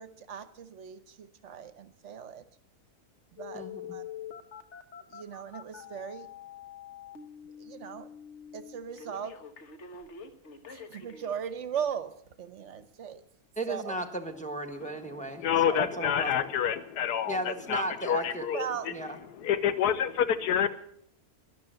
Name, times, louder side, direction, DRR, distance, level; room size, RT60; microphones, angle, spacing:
voice 1, 0.0-2.4 3.4-3.6 3.9-4.0 5.1-6.3 7.6-8.1 8.5-9.3 10.7-13.2 13.7-13.9 18.5-18.9, right 8 dB, 55° right, 1.1 m, -38 dB
Telephone, 3.4-11.3 11.9-12.0, left 7 dB, 50° left, 1.4 m, -45 dB
voice 2, 3.5-4.0 13.6-16.5 17.3-18.5 18.9-19.2, right 2 dB, 5° left, 1.2 m, -35 dB
voice 3, 15.4-18.6 19.4-20.7, left 9 dB, 90° left, 1.4 m, -28 dB
13.0 x 11.0 x 7.9 m
omnidirectional pair, 1.6 m